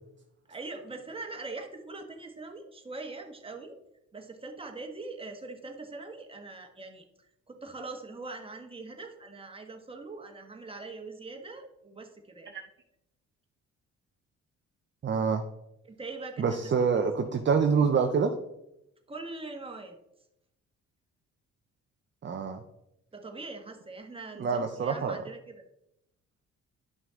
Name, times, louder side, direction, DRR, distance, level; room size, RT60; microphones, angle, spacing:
voice 1, 0.5-3.8 4.1-7.0 7.5-12.5 15.8-16.6 17.0-17.1 19.1-20.0 23.1-25.6, right 3 dB, 20° right, 3 dB, 1.5 m, -42 dB
voice 2, 15.0-15.4 16.4-18.3 22.2-22.6 24.4-25.2, right 5 dB, 40° right, 5 dB, 0.7 m, -26 dB
11.0 x 5.8 x 3.7 m, 0.86 s
cardioid pair, 90°, 30 cm